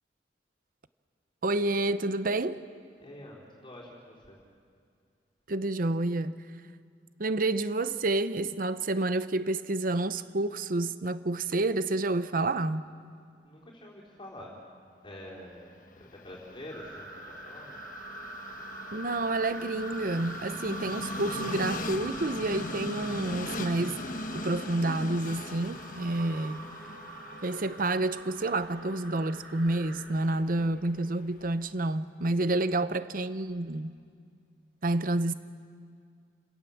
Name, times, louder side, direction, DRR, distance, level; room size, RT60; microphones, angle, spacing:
voice 1, 1.4-2.6 5.5-6.3 7.2-12.8 18.9-24.0 24.3-26.6 27.4-34.0 34.8-35.3, right 2 dB, 50° right, 0.8 m, -29 dB
voice 2, 3.0-4.4 13.4-14.5 15.0-17.1 17.4-17.8 26.2-26.6 32.4-32.5, left 1 dB, 30° left, 4.1 m, -47 dB
Train, 15.7-31.8, left 2 dB, 50° left, 1.2 m, -41 dB
sound 1, 16.7-30.1, right 2 dB, 75° right, 4.0 m, -43 dB
29.5 x 17.0 x 7.2 m
head